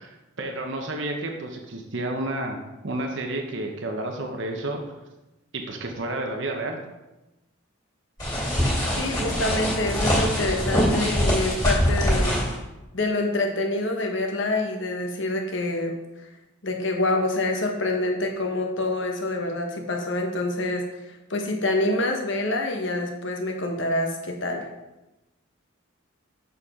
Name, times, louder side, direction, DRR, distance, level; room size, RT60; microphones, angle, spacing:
voice 1, 0.0-4.8 5.5-6.8, right 2 dB, 55° right, 3 dB, 0.9 m, -31 dB
sound 1, 8.2-12.5, equal, 20° left, 2.8 m, -23 dB
voice 2, 9.0-12.4 12.9-16.0 16.6-21.0 21.3-24.7, left 2 dB, 60° left, 2 dB, 1.1 m, -26 dB
6.9 x 6.8 x 3.7 m, 1.0 s
head